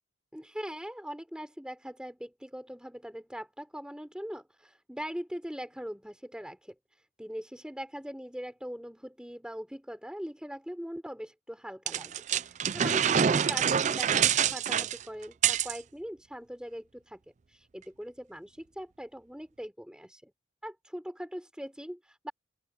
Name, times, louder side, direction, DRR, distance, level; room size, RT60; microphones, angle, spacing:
voice 1, 0.3-6.8 7.2-17.2 17.5-20.3 20.6-22.3, equal, 5° right, 3.5 m, -41 dB
sound 1, 11.9-15.8, right 8 dB, 40° right, 0.4 m, -26 dB
open air
head